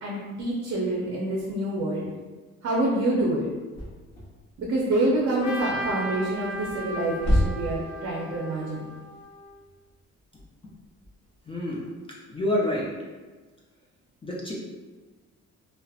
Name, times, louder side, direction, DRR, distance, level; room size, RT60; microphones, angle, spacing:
voice 1, 0.0-2.1 2.6-3.5 4.6-8.8, right 1 dB, 50° right, -4 dB, 0.6 m, -27 dB
sound 1, 3.7-11.5, equal, 35° left, 0.9 m, -32 dB
Trumpet, 5.4-9.6, right 1 dB, 70° left, 0.5 m, -36 dB
voice 2, 11.5-11.9 12.3-12.8 14.2-14.5, left 1 dB, 20° left, -5 dB, 0.4 m, -27 dB
2.7 x 2.0 x 2.3 m, 1.3 s
cardioid pair, 90°, 30 cm